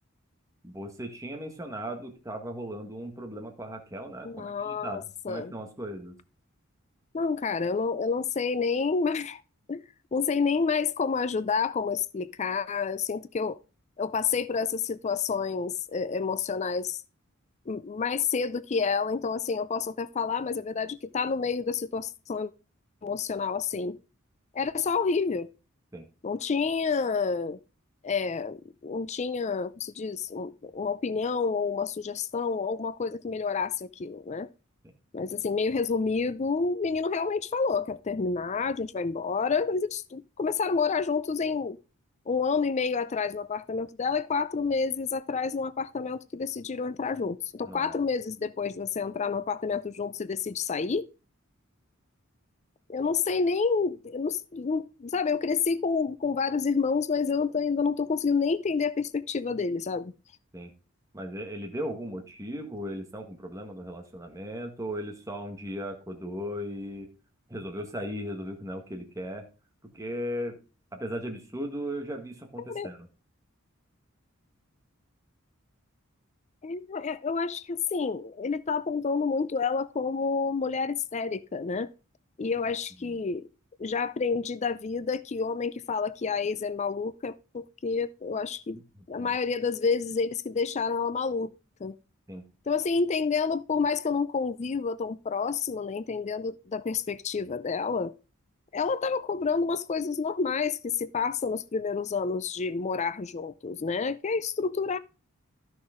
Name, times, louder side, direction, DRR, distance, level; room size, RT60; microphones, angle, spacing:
voice 1, 0.6-6.1 25.9-26.1 47.6-47.9 60.5-60.7 61.1-67.1 67.5-69.4 69.9-70.6 70.9-73.1 83.0-83.2 89.2-89.3 92.3-92.4, equal, 15° right, 1.5 m, -37 dB
voice 2, 4.2-5.5 7.1-9.4 9.7-9.8 10.1-13.6 14.0-17.0 17.7-22.5 23.0-24.0 24.5-25.5 26.2-27.6 28.0-34.5 35.1-41.8 42.3-51.1 52.9-60.1 72.7-72.9 76.6-81.9 82.4-83.5 83.8-88.8 89.1-91.5 91.8-92.0 92.7-98.1 98.7-105.0, left 5 dB, 35° left, 0.4 m, -29 dB
13.0 x 6.2 x 3.7 m
head